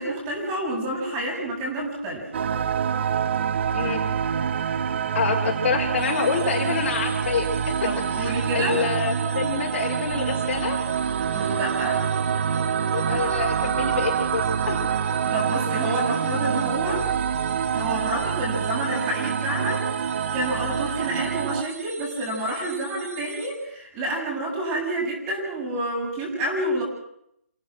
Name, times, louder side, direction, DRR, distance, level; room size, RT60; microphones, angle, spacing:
voice 1, 0.0-2.3 7.8-8.9 11.3-12.0 15.2-17.1 17.7-26.8, right 1 dB, 25° right, -1 dB, 7.6 m, -29 dB
sound 1, 2.3-21.6, right 7 dB, 45° right, 0.9 m, -26 dB
voice 2, 5.1-10.8 12.9-14.8, left 5 dB, 50° left, -2 dB, 5.8 m, -27 dB
sound 2, 6.0-23.5, right 2 dB, 65° right, 6.6 m, -41 dB
29.5 x 17.0 x 6.2 m, 0.74 s
figure-of-eight pair, 150°, 8 cm